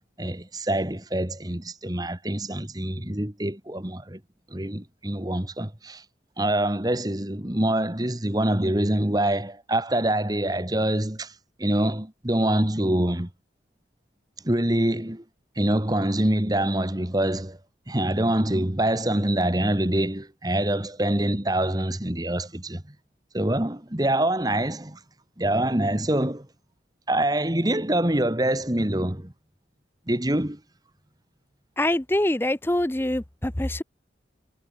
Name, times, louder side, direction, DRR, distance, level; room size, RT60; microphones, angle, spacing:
voice 1, 0.0-4.2 4.5-6.0 6.4-11.3 11.6-13.3 14.4-15.2 15.5-17.6 17.9-22.8 23.3-25.0 25.4-26.5 27.1-29.3 30.1-30.6, right 1 dB, 20° right, 1.7 m, -25 dB
voice 2, 31.8-33.8, left 1 dB, 10° left, 0.6 m, -24 dB
head